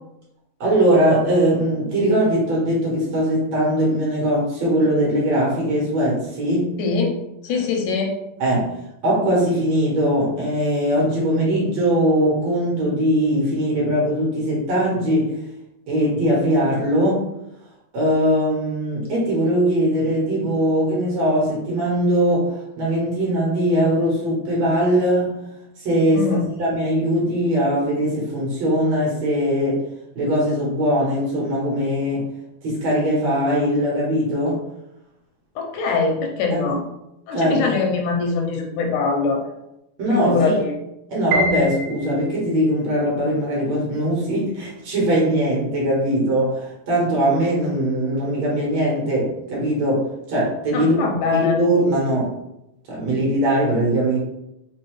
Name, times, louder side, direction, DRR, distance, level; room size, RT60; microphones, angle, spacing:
voice 1, 0.6-6.7 8.4-15.4 15.9-17.3 17.9-25.4 25.8-26.3 26.6-29.8 30.2-32.3 32.6-34.6 36.5-36.8 37.3-37.7 40.0-40.6 41.1-51.0 51.3-52.3 52.9-54.2, equal, 60° right, -5 dB, 2.2 m, -20 dB
voice 2, 6.8-7.1 7.4-8.2 26.1-26.4 35.6-36.8 37.3-39.4 40.1-40.7 50.7-51.6, left 4 dB, 85° left, 1 dB, 2.1 m, -22 dB
Piano, 41.3-42.6, equal, 85° right, 2.2 m, -25 dB
5.5 x 2.7 x 3.0 m, 0.87 s
omnidirectional pair, 3.7 m